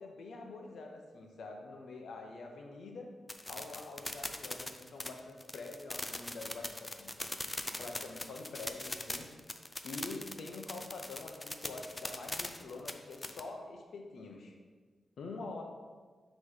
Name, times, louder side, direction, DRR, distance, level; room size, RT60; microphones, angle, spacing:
voice 1, 0.0-3.1 3.5-7.1 7.8-9.3 9.8-14.5 15.2-15.6, left 3 dB, 65° left, 2 dB, 0.8 m, -46 dB
sound 1, 3.3-13.4, left 2 dB, 15° left, 0.3 m, -41 dB
6.3 x 3.2 x 5.6 m, 1.5 s
wide cardioid pair, 160°, 0 cm